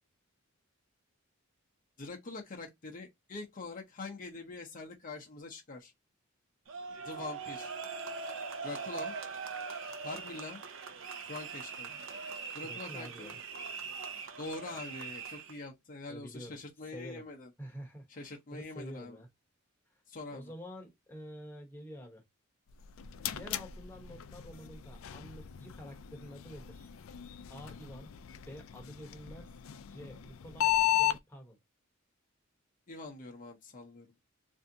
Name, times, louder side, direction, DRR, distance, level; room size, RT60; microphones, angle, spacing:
voice 1, 2.0-5.9 7.0-7.7 8.6-9.1 10.0-10.6 11.2-11.9 12.5-13.4 14.4-17.5 18.1-19.2 20.1-20.5 32.9-34.2, left 3 dB, 40° left, 0.7 m, -44 dB
sound 1, 6.7-15.6, right 5 dB, 60° right, 0.5 m, -41 dB
voice 2, 12.6-13.4 16.1-16.6 16.9-17.2 17.6-19.3 20.3-22.2 23.3-26.9 27.5-28.1 28.5-29.5 29.9-31.6, equal, 10° left, 0.8 m, -48 dB
sound 2, 22.7-31.2, left 13 dB, 70° left, 0.4 m, -35 dB
3.3 x 2.6 x 2.6 m
head